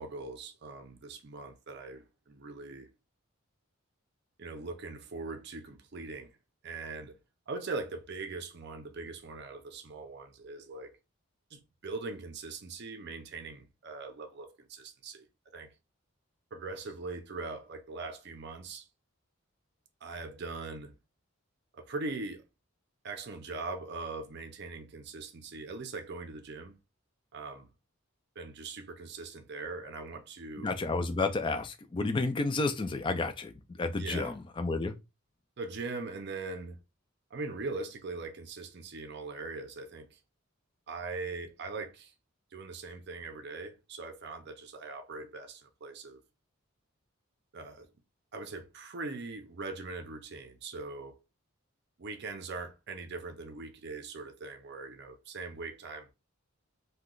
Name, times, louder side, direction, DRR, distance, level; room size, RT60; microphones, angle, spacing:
voice 1, 0.0-2.9 4.4-6.3 6.6-7.2 7.5-11.0 11.5-15.3 15.5-15.7 16.5-18.9 20.0-21.0 21.7-22.4 23.0-26.8 27.3-27.7 28.4-30.7 34.0-34.3 35.6-36.8 37.3-40.2 40.9-42.1 42.5-46.2 47.5-47.9 48.3-51.2 52.0-56.1, right 3 dB, 50° right, 0.5 m, -41 dB
voice 2, 30.6-33.5 33.8-34.9, left 3 dB, 25° left, 0.3 m, -31 dB
2.8 x 2.2 x 3.7 m
head